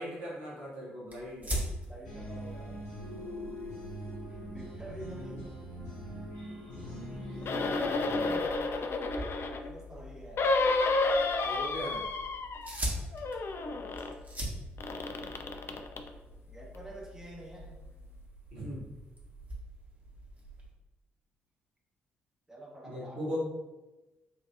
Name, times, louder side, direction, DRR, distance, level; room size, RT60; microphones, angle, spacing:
voice 1, 0.0-1.5 7.4-7.6 10.7-10.8 11.4-12.0 18.5-18.9 22.8-23.4, equal, 80° right, -6 dB, 1.1 m, -39 dB
sound 1, 1.1-20.7, right 1 dB, 30° right, 1.2 m, -44 dB
voice 2, 1.8-2.8 4.5-5.5 8.0-9.0 9.6-10.5 16.5-17.7 22.5-23.4, right 1 dB, 10° right, -3 dB, 1.0 m, -47 dB
sound 2, 2.0-8.4, equal, 75° left, 0.9 m, -42 dB
sound 3, 7.4-9.7 10.4-12.9 13.1-14.1 14.8-16.1 16.7-16.8, left 3 dB, 45° left, 0.4 m, -31 dB
4.2 x 2.7 x 2.4 m, 1.1 s
figure-of-eight pair, 40°, 6 cm